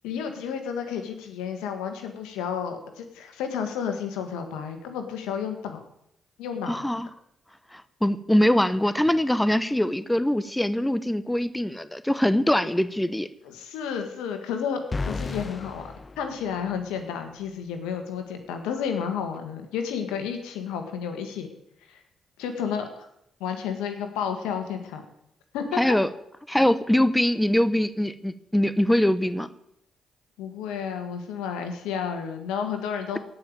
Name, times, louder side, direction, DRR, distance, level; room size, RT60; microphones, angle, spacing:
voice 1, 0.0-5.8 6.4-6.8 13.4-21.5 21.9-22.0 22.4-23.1 23.4-25.0 25.5-25.8 30.4-33.2, left 7 dB, 85° left, 6 dB, 1.7 m, -31 dB
voice 2, 6.7-7.1 7.7-13.3 25.8-26.1 26.5-29.5, left 1 dB, 10° left, 14 dB, 0.9 m, -23 dB
sound 1, 14.9-17.1, left 3 dB, 35° left, 0.5 m, -34 dB
17.0 x 5.8 x 8.9 m, 0.79 s
supercardioid pair, 50°, 0 cm